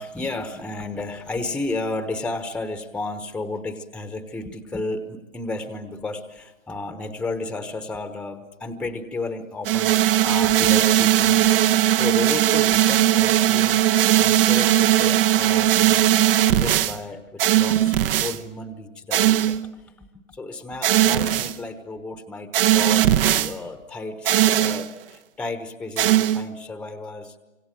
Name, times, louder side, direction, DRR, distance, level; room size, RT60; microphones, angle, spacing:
voice 1, 0.0-27.4, left 2 dB, 5° left, 9 dB, 1.1 m, -33 dB
sound 1, 9.6-17.0 17.4-18.4 19.1-19.6 20.8-21.5 22.5-23.5 24.2-24.9 26.0-26.5, right 12 dB, 45° right, 1.0 m, -18 dB
27.0 x 26.0 x 7.7 m, 1.1 s
hypercardioid pair, 130°, 40 cm